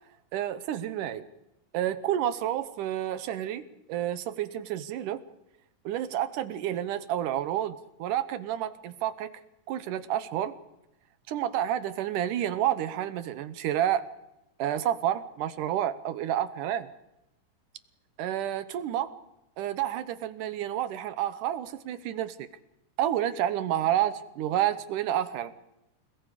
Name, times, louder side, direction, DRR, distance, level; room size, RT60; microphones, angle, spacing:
voice 1, 0.3-1.3 1.7-5.2 5.9-9.3 9.7-10.5 11.3-14.0 14.6-16.9 18.2-19.1 19.6-22.5 23.0-25.5, right 11 dB, 80° right, 13 dB, 2.4 m, -29 dB
30.0 x 20.0 x 5.0 m, 0.88 s
omnidirectional pair, 3.7 m